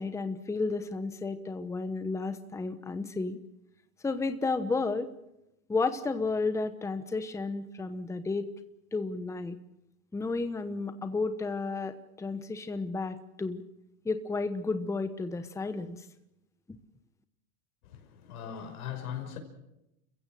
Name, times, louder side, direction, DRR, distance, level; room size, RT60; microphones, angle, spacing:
voice 1, 0.0-3.4 4.0-5.1 5.7-8.5 8.9-9.6 10.1-13.6 14.0-16.0, left 3 dB, 5° left, 1.1 m, -32 dB
voice 2, 17.8-19.4, left 9 dB, 85° left, 5.8 m, -39 dB
29.0 x 15.5 x 7.7 m
supercardioid pair, 135°, 43 cm